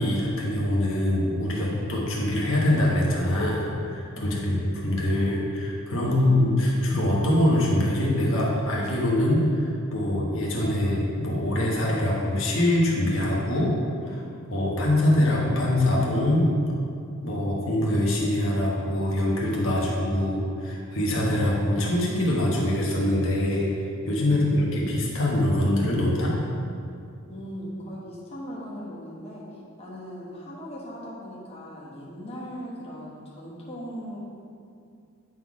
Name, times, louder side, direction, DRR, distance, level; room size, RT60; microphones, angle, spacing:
voice 1, 0.0-13.7 14.0-16.5 17.2-23.7 24.1-26.3, left 1 dB, 65° left, -4 dB, 1.3 m, -24 dB
voice 2, 4.2-4.8 6.0-6.5 24.2-24.9 27.3-29.4 29.8-34.2, equal, 30° left, -6 dB, 1.2 m, -38 dB
9.1 x 4.1 x 4.8 m, 2.4 s
head